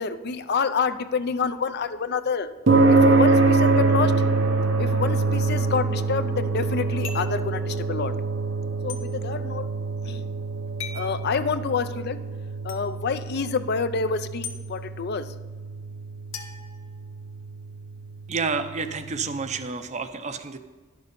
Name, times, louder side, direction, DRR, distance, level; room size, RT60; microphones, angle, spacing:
voice 1, 0.0-2.5 2.9-4.2 4.8-8.1 8.8-9.7 10.1-10.3 10.9-12.2 12.6-15.3, left 5 dB, 55° left, 12 dB, 0.5 m, -28 dB
sound 1, 2.7-19.2, right 3 dB, 70° right, 0.9 m, -25 dB
sound 2, 7.0-7.4 8.9-9.0 10.8-11.1 12.7-12.8 14.4-14.6 16.3-17.4, left 6 dB, 70° left, 1.1 m, -38 dB
voice 2, 18.3-20.6, right 4 dB, 35° right, 10 dB, 0.6 m, -29 dB
11.0 x 6.7 x 5.2 m, 1.4 s
head